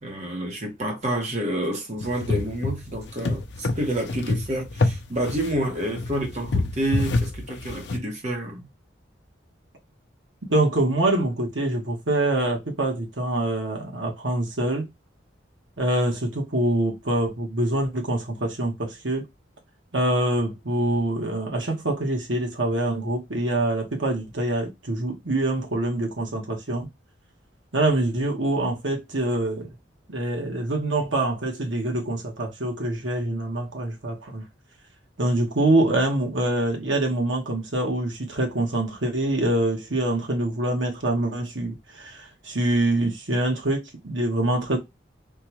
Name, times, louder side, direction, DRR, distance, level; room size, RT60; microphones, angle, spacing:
voice 1, 0.0-8.7, right 1 dB, 35° right, 1.0 m, -29 dB
sound 1, 2.0-8.0, left 2 dB, 65° left, 0.5 m, -27 dB
voice 2, 10.5-14.9 15.8-19.3 19.9-26.9 27.7-29.8 30.1-34.4 35.2-44.8, right 1 dB, 80° right, 1.2 m, -25 dB
3.7 x 2.3 x 2.9 m
head